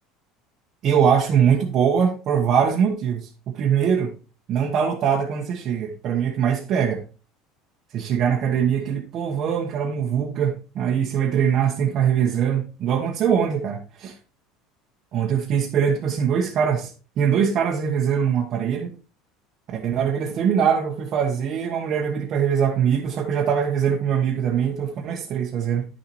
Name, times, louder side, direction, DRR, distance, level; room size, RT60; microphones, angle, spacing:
voice 1, 0.8-4.1 4.5-7.0 7.9-14.1 15.1-16.9 17.2-18.9 19.7-25.8, right 7 dB, 40° right, 1.2 m, -22 dB
10.5 x 6.9 x 3.1 m
cardioid pair, 155°, 0 cm